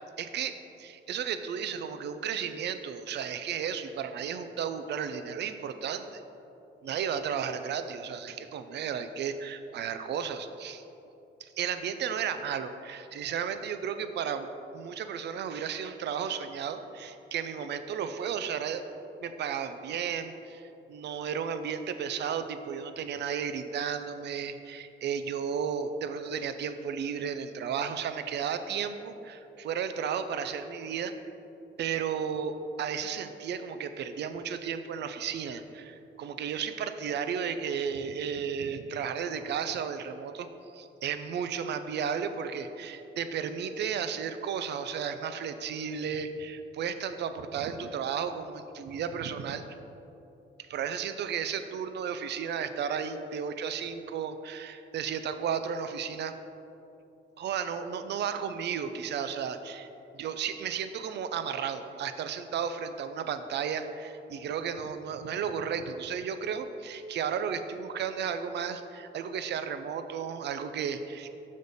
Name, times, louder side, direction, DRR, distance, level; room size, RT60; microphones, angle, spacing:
voice 1, 0.2-6.2 6.8-10.8 11.4-14.5 14.7-18.9 19.2-31.1 31.8-40.5 40.7-49.6 50.6-56.4 57.4-59.8 60.2-71.3, right 7 dB, 60° right, 9 dB, 0.5 m, -34 dB
6.4 x 5.1 x 4.1 m, 2.9 s
cardioid pair, 90°, 20 cm